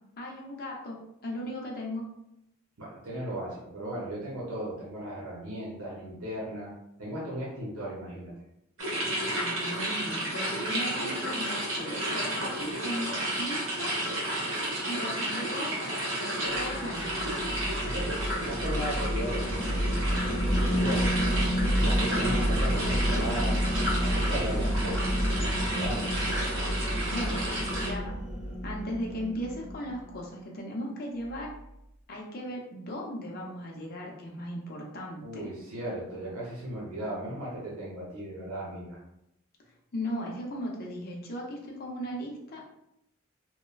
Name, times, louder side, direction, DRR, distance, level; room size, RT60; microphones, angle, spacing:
voice 1, 0.2-1.0 1.2-2.0 9.3-13.9 14.9-17.3 27.1-27.4 27.8-28.2 28.6-31.5 32.1-35.5 39.9-42.8, equal, 45° left, -2 dB, 0.6 m, -37 dB
voice 2, 2.8-6.7 7.0-8.3 17.8-20.1 20.7-21.1 21.8-23.6 24.0-26.0 35.2-39.0, right 1 dB, 90° right, -6 dB, 0.7 m, -36 dB
sound 1, 8.8-27.9, right 1 dB, 65° right, 1.1 m, -32 dB
sound 2, 16.5-30.1, equal, 5° right, 0.8 m, -29 dB
3.0 x 2.1 x 2.3 m, 0.82 s
head